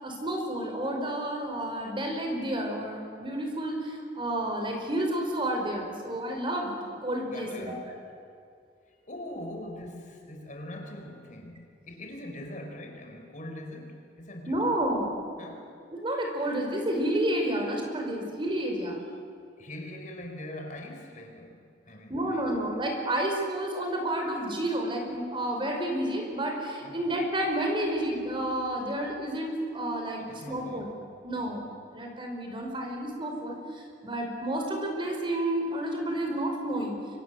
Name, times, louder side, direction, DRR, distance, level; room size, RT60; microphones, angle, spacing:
voice 1, 0.0-6.7 7.0-7.7 14.5-15.2 15.9-19.0 22.1-30.9 31.2-31.6 31.9-37.0, right 1 dB, 25° right, 2 dB, 5.2 m, -30 dB
voice 2, 7.2-7.9 8.9-14.6 15.4-15.7 19.6-22.5 26.8-27.1 30.2-31.0 31.3-31.6, left 1 dB, 45° left, 3 dB, 4.3 m, -42 dB
29.5 x 24.5 x 8.0 m, 2.4 s
head